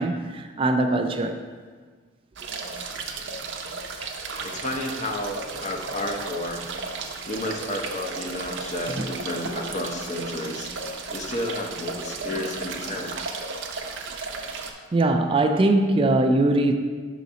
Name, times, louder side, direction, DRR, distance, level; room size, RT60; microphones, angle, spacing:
voice 1, 0.0-1.4 8.9-9.1 14.9-16.7, right 2 dB, 30° right, 6 dB, 0.3 m, -21 dB
sound 1, 2.4-14.7, right 4 dB, 70° right, 0.6 m, -34 dB
voice 2, 4.4-6.6 7.2-10.7 11.1-13.2, left 1 dB, 40° left, 2 dB, 0.7 m, -31 dB
5.7 x 4.0 x 5.0 m, 1.5 s
head